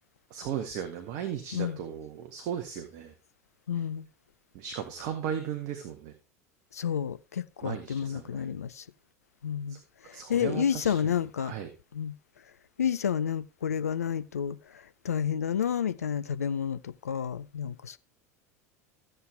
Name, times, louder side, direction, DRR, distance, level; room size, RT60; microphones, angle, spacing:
voice 1, 0.3-3.1 4.5-6.1 7.6-8.6 9.7-9.8 10.1-11.1 11.4-11.7, right 8 dB, 50° right, 1.6 m, -36 dB
voice 2, 3.7-4.1 6.7-8.9 9.4-9.8 10.0-11.5 11.9-12.1 12.8-18.0, left 8 dB, 75° left, 0.5 m, -30 dB
14.5 x 8.0 x 3.4 m
figure-of-eight pair, 75°, 8 cm